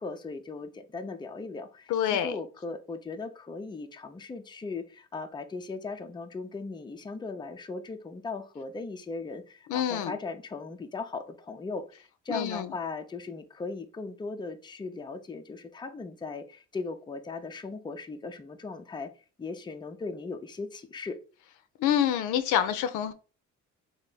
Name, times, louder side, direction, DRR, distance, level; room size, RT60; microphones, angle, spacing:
voice 1, 0.0-19.1 19.4-21.2, left 3 dB, 15° left, 0.5 m, -38 dB
voice 2, 1.9-2.4 9.7-10.1 12.3-12.7 21.8-23.1, left 9 dB, 85° left, 0.5 m, -27 dB
3.4 x 2.1 x 3.8 m
cardioid pair, 90°, 30 cm